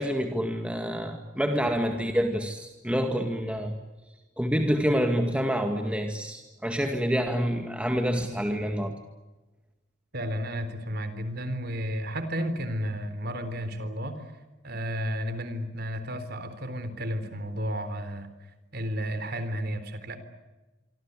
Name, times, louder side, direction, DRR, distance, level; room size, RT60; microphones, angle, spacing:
voice 1, 0.0-3.7 4.4-8.9, equal, 5° right, 4 dB, 2.0 m, -27 dB
voice 2, 10.1-14.3 14.6-18.3 18.7-20.2, equal, 55° right, 11 dB, 4.0 m, -32 dB
26.0 x 25.5 x 8.3 m, 1.1 s
head